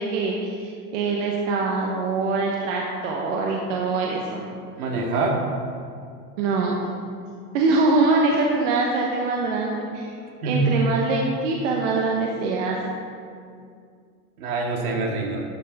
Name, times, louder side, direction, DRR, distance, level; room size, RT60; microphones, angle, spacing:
voice 1, 0.0-4.5 6.4-6.8 7.5-10.1 10.4-12.8, right 3 dB, 55° right, -1 dB, 1.3 m, -23 dB
voice 2, 4.8-5.5 10.4-10.8 14.4-15.4, right 3 dB, 75° right, 0 dB, 2.1 m, -24 dB
12.0 x 6.7 x 4.1 m, 2.3 s
supercardioid pair, 145°, 44 cm